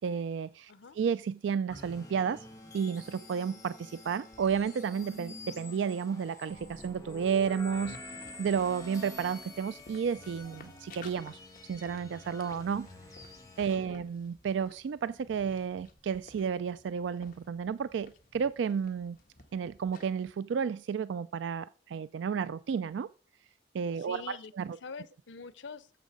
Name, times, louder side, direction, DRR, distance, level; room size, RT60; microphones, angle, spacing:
voice 1, 0.0-2.5 2.7-8.0 8.4-11.4 11.7-12.9 13.6-19.2 19.5-23.1 23.7-24.7, right 7 dB, 80° right, 0.3 m, -32 dB
voice 2, 0.7-1.0 13.7-14.1 23.9-25.9, left 5 dB, 90° left, 0.7 m, -46 dB
sound 1, 1.7-13.8, left 1 dB, 20° left, 1.8 m, -47 dB
sound 2, 7.6-20.3, left 3 dB, 50° left, 1.3 m, -57 dB
9.2 x 7.3 x 4.8 m
head